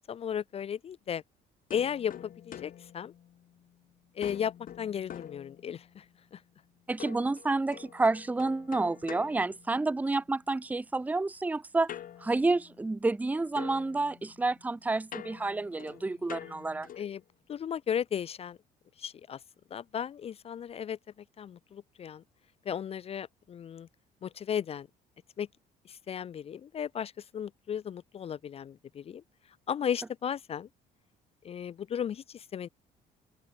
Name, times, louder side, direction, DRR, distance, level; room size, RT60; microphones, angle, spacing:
voice 1, 0.1-1.2 1.7-3.1 4.2-6.0 17.0-17.2 17.5-18.6 19.0-19.4 19.7-21.0 21.4-22.2 22.7-23.9 24.2-24.9 25.4-25.5 25.9-29.2 29.7-30.7 31.4-32.7, left 8 dB, 35° left, 0.4 m, -35 dB
sound 1, 1.7-3.8 4.2-6.1 7.0-10.2 11.9-13.3 13.6-17.2, left 10 dB, 55° left, 4.6 m, -47 dB
voice 2, 6.9-11.9 12.2-16.9, right 3 dB, 10° right, 0.6 m, -29 dB
open air
cardioid pair, 110°, 17 cm